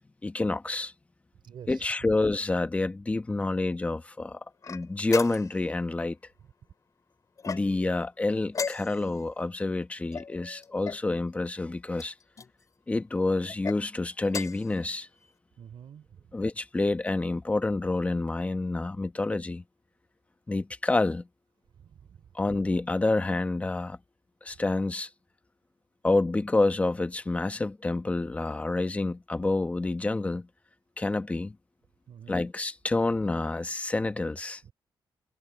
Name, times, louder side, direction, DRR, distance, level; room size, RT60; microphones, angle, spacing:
voice 1, 0.2-0.9 1.7-4.4 4.7-6.2 7.5-12.1 12.9-15.1 16.3-19.6 20.5-21.3 22.3-24.0 24.4-25.1 26.0-30.5 31.0-31.6 32.3-34.6, left 2 dB, 15° left, 1.0 m, -28 dB
voice 2, 1.4-1.9 15.6-16.1 21.8-22.2 32.1-32.5 34.6-34.7, right 8 dB, 70° right, 3.5 m, -47 dB
sound 1, 4.6-5.7 7.4-8.0 8.5-9.2 10.1-11.1 11.9-12.5 13.5-13.8 14.2-14.7, left 5 dB, 40° left, 3.9 m, -36 dB
wide cardioid pair, 160°, 9 cm